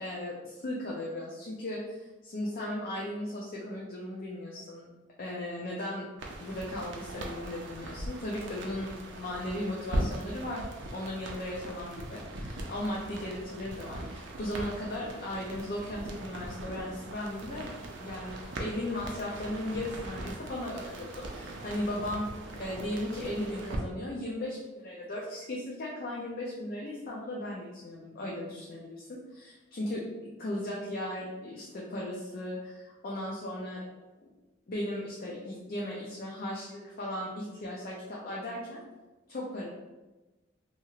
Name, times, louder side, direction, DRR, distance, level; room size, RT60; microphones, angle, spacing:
voice 1, 0.0-4.9 5.2-6.1 6.4-10.7 10.9-17.7 18.0-18.3 18.6-22.3 22.6-30.0 30.4-33.8 34.7-38.8 39.3-39.7, left 1 dB, 50° left, -4 dB, 0.5 m, -36 dB
sound 1, 6.2-23.8, right 1 dB, 80° right, 0.5 m, -40 dB
2.9 x 2.8 x 2.4 m, 1.1 s
head